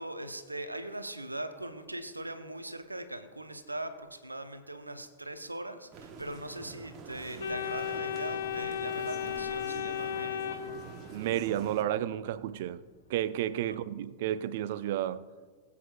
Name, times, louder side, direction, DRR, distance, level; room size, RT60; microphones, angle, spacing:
voice 1, 0.0-10.5 13.6-13.8, right 1 dB, 85° right, 0.7 m, -40 dB
sound 1, 5.9-11.8, right 5 dB, 35° right, 1.1 m, -46 dB
Organ, 7.4-11.3, left 9 dB, 70° left, 1.3 m, -35 dB
voice 2, 11.1-12.8 13.1-15.2, right 12 dB, 55° right, 0.4 m, -31 dB
21.0 x 8.4 x 2.3 m
figure-of-eight pair, 90°, 0 cm